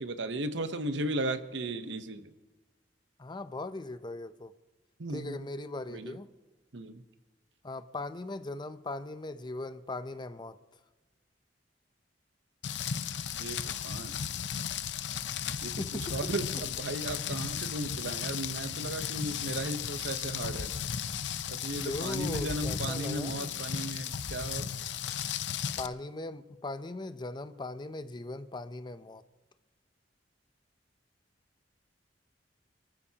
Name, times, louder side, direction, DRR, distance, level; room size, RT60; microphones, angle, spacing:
voice 1, 0.0-2.2 5.0-5.5 5.9-6.2 6.7-7.0 13.4-14.2 15.6-20.7 21.5-24.7, right 2 dB, 90° right, 9 dB, 0.9 m, -36 dB
voice 2, 3.2-4.5 5.1-6.3 7.6-10.6 15.8-16.2 20.5-20.8 21.8-23.5 25.8-29.2, left 2 dB, 25° left, 12 dB, 0.6 m, -39 dB
Rain, 12.6-25.9, left 8 dB, 75° left, 0.6 m, -35 dB
27.5 x 14.0 x 2.9 m, 1.2 s
head